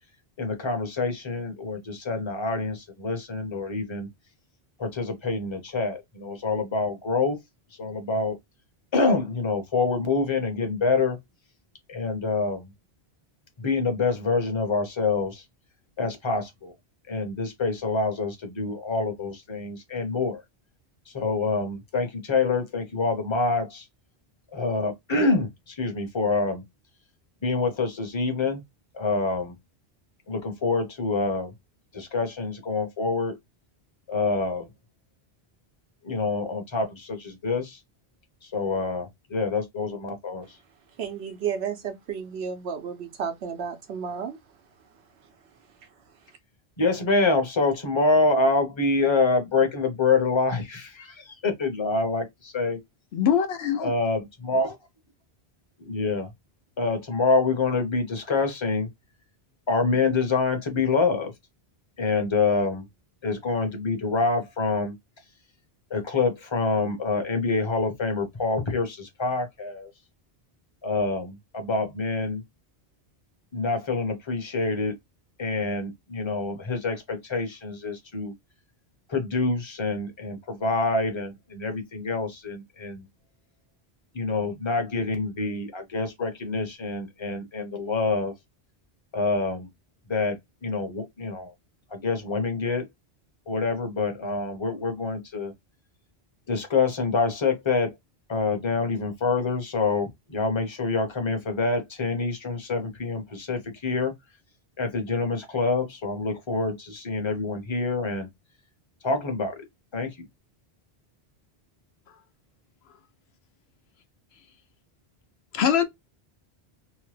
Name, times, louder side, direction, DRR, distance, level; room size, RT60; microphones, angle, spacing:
voice 1, 0.4-4.1 4.8-7.4 7.8-8.4 8.9-11.2 11.9-12.7 13.6-15.4 16.0-16.7 17.1-20.4 21.1-23.9 24.5-26.6 27.4-28.6 28.9-29.6 30.3-31.5 31.9-33.3 34.1-34.7 36.0-37.8 38.5-40.5 46.8-52.8 53.8-54.8 55.8-56.3 56.8-58.9 59.7-61.3 62.0-62.8 63.2-64.9 65.9-69.9 70.8-72.4 73.5-74.9 75.4-78.3 79.1-83.0 84.1-88.3 89.1-89.7 90.1-91.5 91.9-92.8 93.5-95.5 96.5-97.9 98.3-104.1 104.8-108.3 109.0-109.6 109.9-110.1, left 3 dB, 30° left, 0.8 m, -26 dB
voice 2, 41.0-44.4, right 7 dB, 75° right, 0.9 m, -32 dB
voice 3, 53.1-53.9 115.5-115.8, left 8 dB, 75° left, 0.9 m, -22 dB
2.9 x 2.1 x 3.1 m
omnidirectional pair, 1.1 m